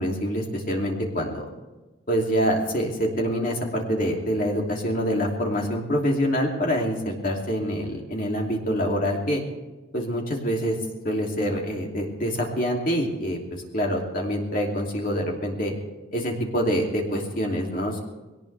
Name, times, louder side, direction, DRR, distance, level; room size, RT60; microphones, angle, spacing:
voice 1, 0.0-1.4 2.1-9.4 9.9-10.8 11.0-15.7 16.1-18.0, equal, 40° left, 0 dB, 2.9 m, -26 dB
21.0 x 18.5 x 3.5 m, 1.2 s
head